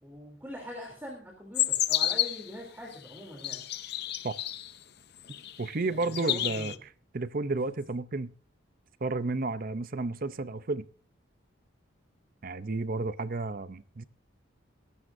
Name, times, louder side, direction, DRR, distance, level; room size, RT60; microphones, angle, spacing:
voice 1, 0.0-3.6 5.9-6.7, left 1 dB, 10° right, 3.2 m, -42 dB
sound 1, 1.5-2.5 3.2-4.7 5.3-5.7 6.0-6.8, left 13 dB, 55° left, 0.6 m, -30 dB
voice 2, 5.6-8.3 9.0-10.9 12.4-14.0, right 3 dB, 45° right, 0.6 m, -32 dB
22.5 x 12.5 x 2.7 m
head